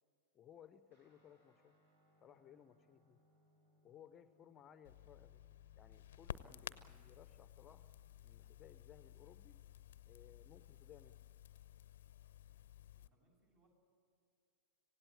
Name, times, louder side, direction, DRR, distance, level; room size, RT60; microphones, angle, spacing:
voice 1, 0.3-1.7 2.2-3.2 3.8-5.4 5.8-7.9 8.2-9.6 10.1-11.2, left 9 dB, 25° left, 13 dB, 0.7 m, -62 dB
Guitar, 0.9-10.6, left 1 dB, 65° right, 6.7 m, -76 dB
Crackle, 4.8-13.1, left 11 dB, 60° left, 0.6 m, -54 dB
voice 2, 12.9-13.7, right 1 dB, 45° right, 2 dB, 6.7 m, -75 dB
26.0 x 17.0 x 8.9 m, 2.6 s
figure-of-eight pair, 90°, 0 cm